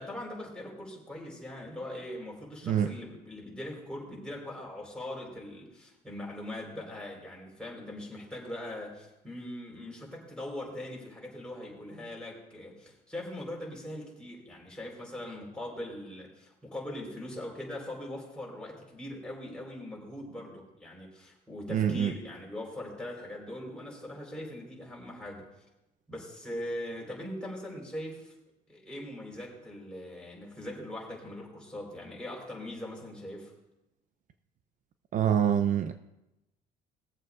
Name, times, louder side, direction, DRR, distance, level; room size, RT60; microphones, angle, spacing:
voice 1, 0.0-25.4 26.1-28.3 28.7-33.5, left 1 dB, 5° left, -3 dB, 4.2 m, -41 dB
voice 2, 21.7-22.1 35.1-36.0, right 9 dB, 50° right, 9 dB, 0.6 m, -25 dB
20.0 x 7.7 x 2.5 m, 0.93 s
cardioid pair, 110°, 17 cm